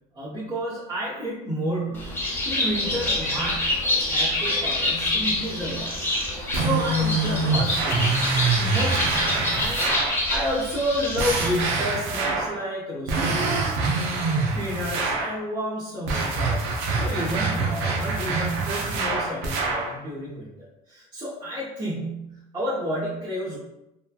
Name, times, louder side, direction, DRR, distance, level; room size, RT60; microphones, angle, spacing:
voice 1, 0.1-3.8 4.1-6.1 6.5-10.0 10.2-13.6 14.5-20.5 20.9-23.6, equal, 20° right, -8 dB, 0.8 m, -30 dB
Bird, 1.9-11.6, left 1 dB, 10° left, 0.7 m, -27 dB
sound 1, 6.5-10.2 11.2-12.6 13.1-15.4 16.1-19.9, right 3 dB, 70° right, 0.6 m, -25 dB
3.0 x 2.2 x 2.3 m, 0.88 s
supercardioid pair, 100°, 21 cm